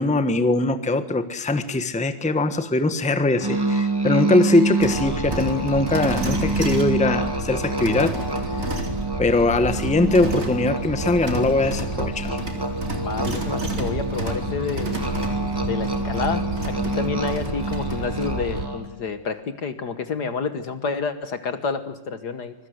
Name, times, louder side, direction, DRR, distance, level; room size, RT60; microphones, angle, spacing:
voice 1, 0.0-8.2 9.2-12.4, left 2 dB, 5° left, 10 dB, 1.1 m, -21 dB
Musical instrument, 3.4-19.0, right 2 dB, 10° right, 2.9 m, -28 dB
sound 1, 4.8-18.6, right 2 dB, 35° right, 3.3 m, -30 dB
voice 2, 13.0-15.0 15.7-22.5, left 5 dB, 60° left, 10 dB, 1.9 m, -29 dB
25.0 x 22.5 x 8.0 m, 0.89 s
omnidirectional pair, 2.0 m